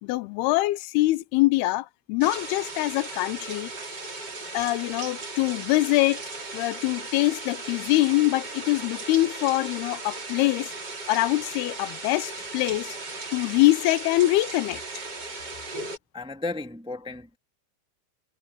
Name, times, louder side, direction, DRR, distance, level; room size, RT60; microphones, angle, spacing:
voice 1, 0.0-3.7 4.5-6.2 6.5-10.7 11.1-13.0 13.3-15.0, left 18 dB, 85° left, 2.7 m, -24 dB
sound 1, 2.2-16.0, right 3 dB, 30° right, 3.5 m, -37 dB
voice 2, 16.1-17.4, left 2 dB, 5° right, 0.8 m, -34 dB
omnidirectional pair, 4.5 m